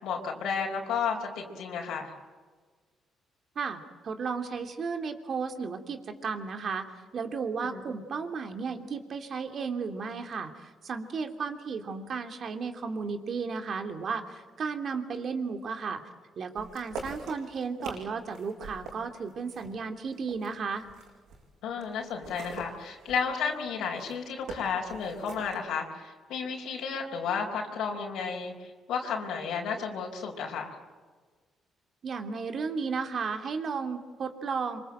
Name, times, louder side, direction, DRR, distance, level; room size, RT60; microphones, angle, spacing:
voice 1, 0.0-2.1 7.7-7.8 21.6-30.7, left 6 dB, 85° left, 0 dB, 4.7 m, -32 dB
voice 2, 3.5-6.9 7.1-16.0 16.4-20.9 32.0-34.8, right 5 dB, 55° right, 5 dB, 3.0 m, -34 dB
sound 1, 16.6-21.5 21.8-25.6, right 3 dB, 85° right, 7.8 m, -44 dB
26.5 x 25.0 x 8.0 m, 1.5 s
cardioid pair, 90°, 0 cm